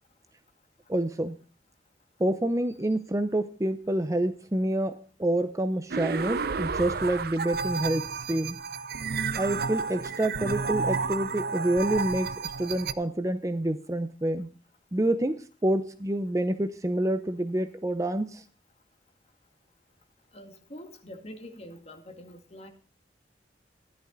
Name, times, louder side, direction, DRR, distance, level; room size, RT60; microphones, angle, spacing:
voice 1, 0.9-1.4 2.2-8.6 9.4-14.5 14.9-18.4, right 1 dB, 20° right, 11 dB, 0.6 m, -28 dB
sound 1, 5.9-12.9, right 5 dB, 55° right, 0.6 m, -31 dB
voice 2, 20.3-22.7, left 1 dB, 35° left, 5 dB, 2.0 m, -45 dB
13.5 x 11.0 x 3.9 m, 0.38 s
head